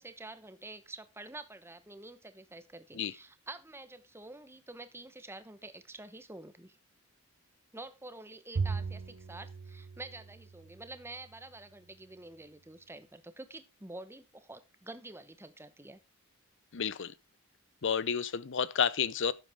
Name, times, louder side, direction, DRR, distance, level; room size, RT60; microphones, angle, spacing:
voice 1, 0.0-6.8 7.7-16.0, right 2 dB, 10° right, 1.0 m, -48 dB
Bowed string instrument, 8.6-11.1, right 4 dB, 70° right, 0.6 m, -37 dB
voice 2, 16.7-17.1 17.8-19.3, left 7 dB, 60° left, 0.7 m, -30 dB
12.0 x 8.6 x 3.5 m
head